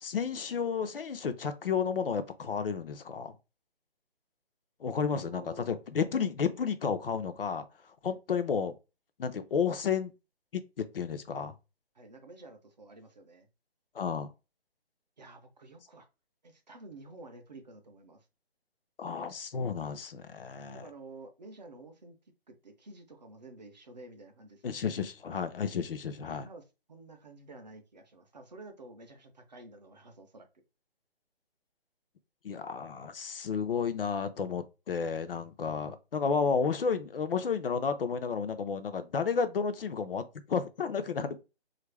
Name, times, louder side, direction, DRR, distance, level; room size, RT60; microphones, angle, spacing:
voice 1, 0.0-3.4 4.8-7.7 8.0-8.7 9.2-10.1 10.5-11.5 13.9-14.3 19.0-20.8 24.6-26.5 32.4-41.4, left 6 dB, 60° left, 0.5 m, -32 dB
voice 2, 5.1-5.7 8.1-8.2 11.9-13.5 15.2-16.1 16.4-18.3 20.7-22.2 22.5-24.9 26.4-30.6, right 2 dB, 45° right, 0.5 m, -51 dB
3.0 x 2.4 x 3.2 m
hypercardioid pair, 170°, 31 cm